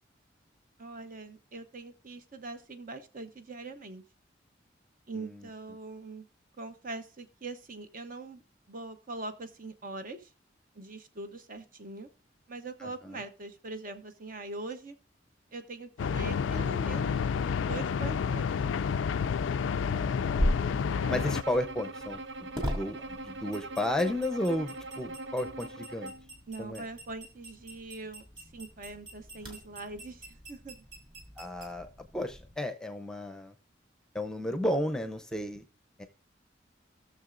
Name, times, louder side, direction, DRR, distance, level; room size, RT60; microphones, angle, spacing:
voice 1, 0.8-4.0 5.1-6.2 6.6-8.4 8.7-10.3 10.7-12.1 12.5-15.0 15.5-17.3 17.6-18.5 26.5-30.8, right 2 dB, 45° right, 8 dB, 0.8 m, -42 dB
voice 2, 12.8-13.2 19.8-20.8 21.1-26.1 26.6-26.8 31.4-31.9 32.1-33.5 34.1-35.6 36.0-36.1, left 1 dB, 5° left, 7 dB, 0.7 m, -33 dB
sound 1, 16.0-21.4, left 6 dB, 85° left, 0.4 m, -29 dB
sound 2, 20.3-32.5, equal, 25° right, 2.3 m, -39 dB
Bowed string instrument, 20.9-26.3, right 2 dB, 70° right, 0.6 m, -42 dB
17.0 x 6.7 x 2.5 m, 0.34 s
head